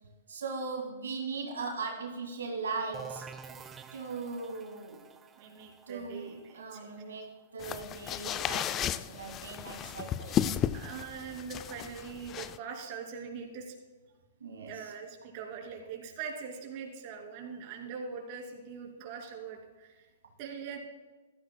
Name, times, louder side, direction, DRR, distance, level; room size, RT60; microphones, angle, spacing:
voice 1, 0.3-3.3 3.9-5.0 5.9-10.4 14.4-14.9, right 4 dB, 85° right, 1 dB, 2.0 m, -39 dB
sound 1, 2.9-8.5, right 7 dB, 20° right, 0.6 m, -49 dB
voice 2, 5.4-6.9 10.7-13.7 14.7-20.1 20.4-20.8, right 6 dB, 45° right, 1 dB, 2.8 m, -42 dB
sound 2, 7.6-12.6, left 10 dB, 25° left, 0.4 m, -34 dB
15.0 x 13.0 x 2.2 m, 1.3 s
hypercardioid pair, 130°, 0 cm